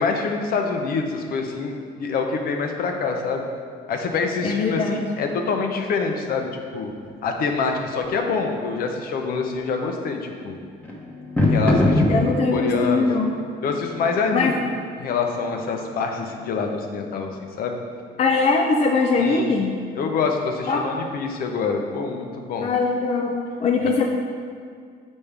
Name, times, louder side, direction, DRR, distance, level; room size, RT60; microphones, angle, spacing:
voice 1, 0.0-1.7 2.0-3.4 3.9-4.8 5.2-6.9 7.2-10.6 11.4-13.1 13.6-14.6 15.0-17.3 17.6-17.8 19.2-19.5 20.0-22.7, left 4 dB, 60° left, 3 dB, 0.8 m, -26 dB
voice 2, 4.4-5.0 12.1-13.3 14.3-14.5 18.2-19.8 20.7-20.9 22.6-24.1, left 4 dB, 40° left, 1 dB, 0.5 m, -21 dB
sound 1, 6.8-17.6, left 1 dB, 10° left, 1.2 m, -28 dB
7.2 x 5.3 x 3.4 m, 2.1 s
cardioid pair, 110°, 17 cm